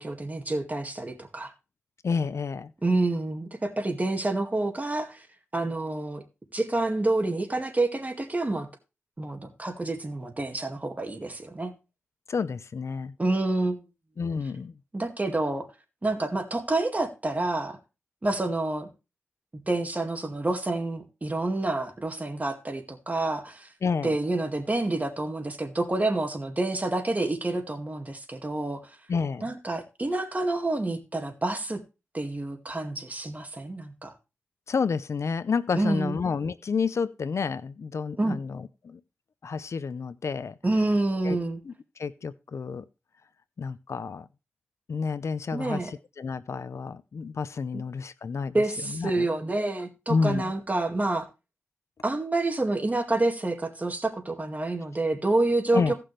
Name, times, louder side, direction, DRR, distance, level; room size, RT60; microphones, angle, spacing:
voice 1, 0.0-1.5 2.8-5.3 5.5-6.2 6.5-8.7 9.2-11.7 13.2-13.8 14.9-15.7 16.0-17.8 18.2-18.9 19.7-23.7 24.0-28.9 29.4-31.8 32.1-34.1 35.7-36.2 38.2-38.4 40.6-41.6 45.5-45.9 47.7-47.8 48.5-51.3 52.0-55.9, right 2 dB, 30° right, 2.0 m, -28 dB
voice 2, 2.0-2.7 12.3-13.1 14.2-14.7 23.8-24.2 29.1-29.5 34.7-39.0 39.4-40.5 41.2-41.4 41.6-42.9 43.6-44.3 44.9-49.3 50.1-50.5 55.7-55.9, left 5 dB, 75° left, 0.6 m, -30 dB
17.0 x 6.0 x 3.2 m
wide cardioid pair, 65°, 5 cm